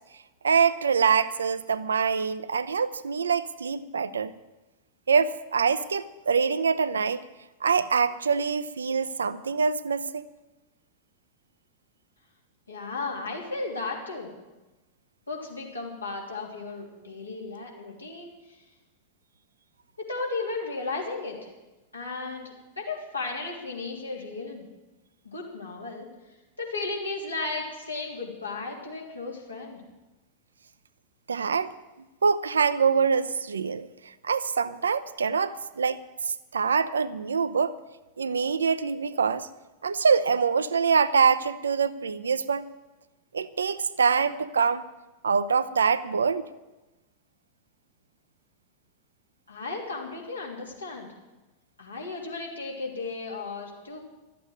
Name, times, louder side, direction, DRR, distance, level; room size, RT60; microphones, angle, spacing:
voice 1, 0.4-4.3 5.1-7.2 7.6-10.3 31.3-31.7 32.2-37.7 38.2-39.5 39.8-42.7 43.3-44.8 45.2-46.5, right 6 dB, 70° right, 14 dB, 0.6 m, -25 dB
voice 2, 12.7-14.3 15.3-18.6 20.0-21.4 21.9-24.7 25.2-26.1 26.6-29.8 49.5-51.1 51.8-54.0, left 3 dB, 80° left, -2 dB, 3.2 m, -35 dB
13.0 x 8.5 x 9.4 m, 1.1 s
figure-of-eight pair, 90°, 0 cm